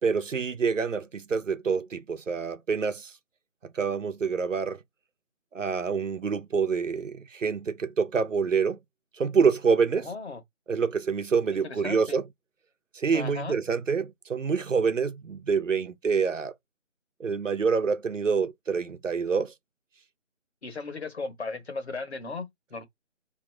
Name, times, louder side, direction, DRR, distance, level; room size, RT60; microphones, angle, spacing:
voice 1, 0.0-3.1 3.7-4.8 5.5-8.8 9.2-10.1 10.7-12.2 12.9-16.5 17.2-19.5, right 5 dB, 75° right, 0.9 m, -26 dB
voice 2, 10.0-10.4 11.6-12.2 13.1-13.6 20.6-22.9, left 3 dB, 55° left, 1.3 m, -36 dB
3.8 x 2.9 x 3.2 m
figure-of-eight pair, 165°, 38 cm